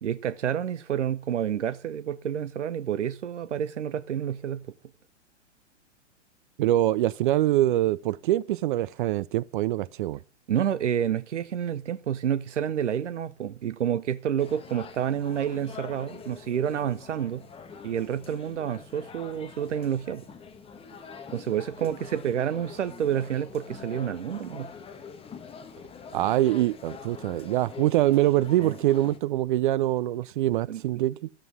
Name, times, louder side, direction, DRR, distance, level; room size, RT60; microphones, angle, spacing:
voice 1, 0.0-4.6 10.5-17.4 17.8-20.3 21.3-24.7 28.6-28.8 30.7-30.8, right 9 dB, 80° right, 0.8 m, -29 dB
voice 2, 6.6-10.2 26.1-31.2, right 14 dB, 45° right, 0.5 m, -24 dB
sound 1, 14.4-29.2, left 6 dB, 15° left, 1.3 m, -44 dB
13.5 x 7.6 x 6.1 m
hypercardioid pair, 110°, 36 cm